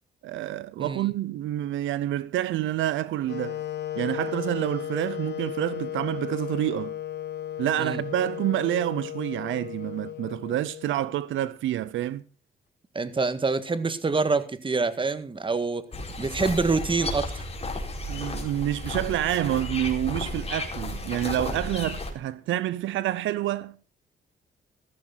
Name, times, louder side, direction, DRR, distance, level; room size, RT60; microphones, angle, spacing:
voice 1, 0.2-3.6 4.0-7.0 7.6-12.2 18.1-23.8, right 13 dB, 80° right, 0.7 m, -28 dB
Wind instrument woodwind instrument, 3.3-11.2, left 11 dB, 60° left, 1.4 m, -35 dB
voice 2, 12.9-15.9 16.2-17.4, right 4 dB, 25° right, 1.7 m, -26 dB
sound 1, 15.9-22.1, left 2 dB, 30° left, 4.6 m, -33 dB
15.0 x 14.0 x 3.9 m
cardioid pair, 90°, 20 cm